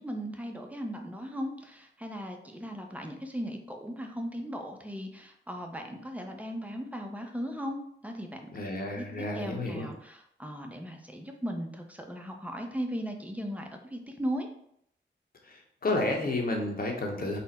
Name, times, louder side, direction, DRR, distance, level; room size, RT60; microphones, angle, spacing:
voice 1, 0.0-8.5 8.9-14.5, equal, 5° right, 3 dB, 0.6 m, -37 dB
voice 2, 8.5-9.9 15.5-15.6 15.8-17.4, left 2 dB, 50° left, 1 dB, 0.9 m, -31 dB
4.1 x 2.0 x 4.1 m, 0.71 s
wide cardioid pair, 90°, 20 cm